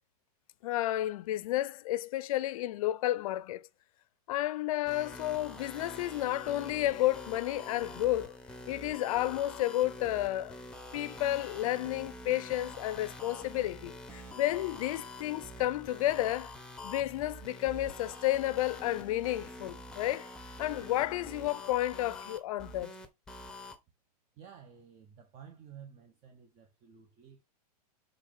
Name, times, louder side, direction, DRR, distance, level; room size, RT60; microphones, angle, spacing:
voice 1, 0.6-3.7 4.3-8.4 8.7-10.6 10.9-16.5 16.8-20.3 20.6-22.9, left 15 dB, 60° left, 0.6 m, -31 dB
sound 1, 4.9-23.8, left 1 dB, 5° left, 1.0 m, -46 dB
voice 2, 24.4-27.4, right 8 dB, 35° right, 1.2 m, -53 dB
7.1 x 3.9 x 3.6 m
supercardioid pair, 145°, 20 cm